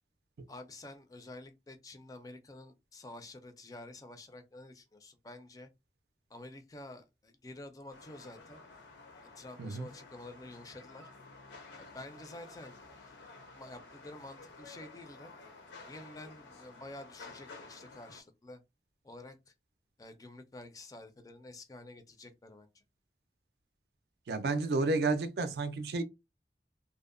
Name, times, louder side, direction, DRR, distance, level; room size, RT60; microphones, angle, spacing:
voice 1, 0.5-5.7 6.3-8.6 9.4-11.0 11.7-12.8 13.6-15.3 15.9-18.6 19.0-19.5 20.0-22.8, left 2 dB, 20° left, 0.3 m, -49 dB
sound 1, 7.9-18.2, left 3 dB, 90° left, 0.6 m, -52 dB
voice 2, 24.3-26.0, right 3 dB, 65° right, 0.4 m, -31 dB
2.6 x 2.0 x 2.4 m
head